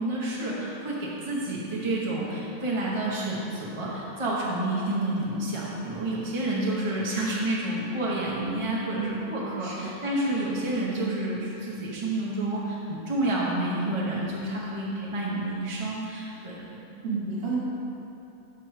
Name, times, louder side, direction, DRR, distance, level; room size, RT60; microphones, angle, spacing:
voice 1, 0.0-16.8, right 1 dB, 25° right, -5 dB, 0.7 m, -29 dB
voice 2, 9.6-10.0 17.0-17.6, right 4 dB, 45° right, -6 dB, 1.2 m, -31 dB
6.2 x 4.5 x 4.7 m, 2.9 s
omnidirectional pair, 1.6 m